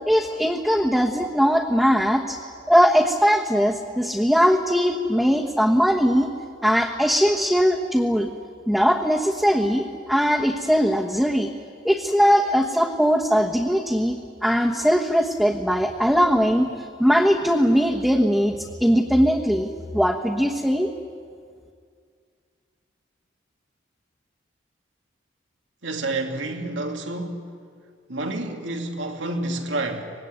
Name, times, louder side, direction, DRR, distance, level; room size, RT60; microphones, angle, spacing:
voice 1, 0.0-2.4 2.7-6.3 6.6-8.3 8.7-11.5 11.8-16.7 17.0-19.7 19.9-20.9, equal, ahead, 1.2 m, -20 dB
voice 2, 25.8-27.5 28.1-30.0, right 2 dB, 90° right, 2.4 m, -29 dB
25.0 x 20.0 x 9.6 m
head